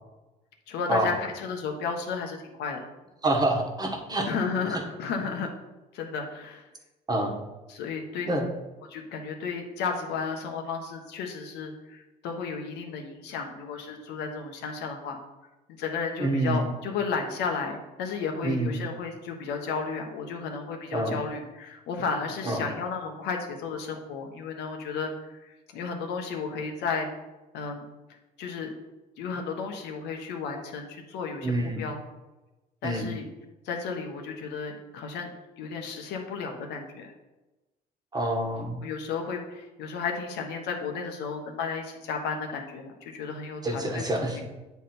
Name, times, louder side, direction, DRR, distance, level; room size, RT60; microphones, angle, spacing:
voice 1, 0.7-2.9 4.3-5.5 5.9-6.6 7.7-8.3 8.9-15.2 15.8-27.1 27.5-27.9 28.4-28.7 29.2-32.0 32.8-33.2 33.6-35.3 35.6-37.1 38.8-44.5, left 5 dB, 85° left, 3 dB, 1.1 m, -33 dB
voice 2, 3.2-4.3 7.1-7.4 8.3-8.5 16.2-16.7 18.4-18.9 20.9-21.2 22.4-22.7 31.4-31.9 32.8-33.1 38.1-38.8 43.6-44.5, right 1 dB, 25° right, 1 dB, 1.2 m, -27 dB
9.1 x 3.6 x 4.3 m, 1.1 s
cardioid pair, 110°, 17 cm